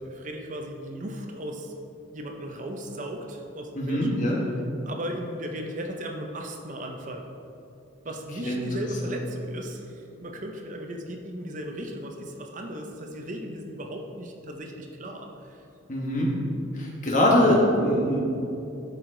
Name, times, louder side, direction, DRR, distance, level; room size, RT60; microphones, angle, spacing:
voice 1, 0.0-1.7 2.1-4.3 4.8-7.3 8.0-15.6, right 1 dB, 40° right, 2 dB, 0.6 m, -36 dB
voice 2, 3.8-4.4 8.4-8.6 15.9-16.3 16.7-18.2, left 1 dB, 40° left, -3 dB, 1.3 m, -22 dB
11.5 x 4.7 x 3.8 m, 2.7 s
head